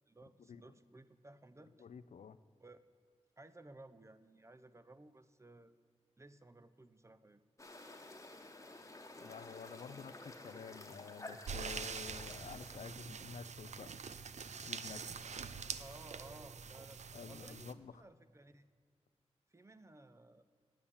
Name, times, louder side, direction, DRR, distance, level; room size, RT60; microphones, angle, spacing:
voice 1, 0.1-1.9 2.6-2.8 3.4-5.7 6.2-7.4 15.8-18.7 19.5-20.4, right 2 dB, 25° right, 12 dB, 0.6 m, -57 dB
voice 2, 1.8-2.4 9.2-13.9 14.6-15.2 17.1-18.0, left 6 dB, 90° left, 15 dB, 0.5 m, -50 dB
sound 1, 7.6-12.8, left 2 dB, 25° left, 1.1 m, -52 dB
sound 2, 11.5-17.7, right 5 dB, 80° right, 0.5 m, -45 dB
9.5 x 8.7 x 7.2 m, 2.2 s
wide cardioid pair, 80°, 12 cm